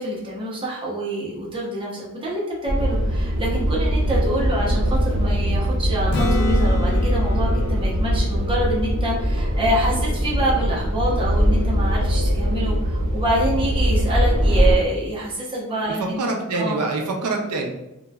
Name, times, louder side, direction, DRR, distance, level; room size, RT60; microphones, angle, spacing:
voice 1, 0.0-16.2 16.5-16.9, right 1 dB, 25° right, -4 dB, 0.6 m, -26 dB
sound 1, 2.6-14.7, equal, 65° right, 0.8 m, -21 dB
Acoustic guitar / Strum, 6.1-9.9 14.7-14.8, left 2 dB, 50° left, 0.4 m, -30 dB
voice 2, 15.9-17.7, right 3 dB, 85° right, 2 dB, 0.5 m, -25 dB
2.9 x 2.2 x 2.2 m, 0.90 s
head